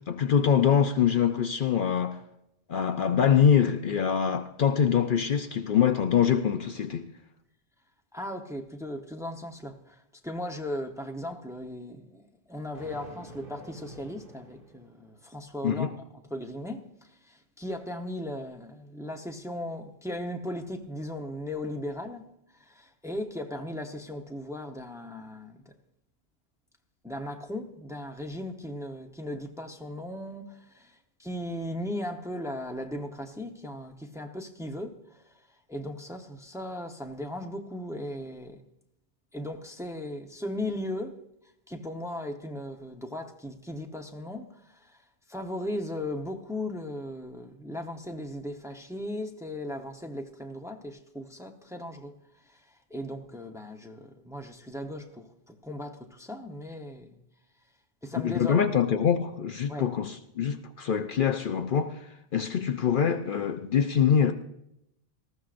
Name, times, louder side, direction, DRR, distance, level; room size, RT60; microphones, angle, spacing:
voice 1, 0.1-2.2 2.7-7.1 15.6-15.9 58.2-62.0 62.3-64.3, left 8 dB, 60° left, 0.7 m, -24 dB
voice 2, 8.1-15.9 16.3-22.3 22.5-25.7 27.0-38.6 39.3-41.2 41.7-45.0 45.3-52.1 52.4-57.2 58.0-58.7 59.7-59.9, left 1 dB, 5° right, 0.9 m, -37 dB
Thunder, 12.7-15.3, right 2 dB, 55° right, 2.5 m, -48 dB
19.0 x 14.5 x 2.5 m
omnidirectional pair, 1.1 m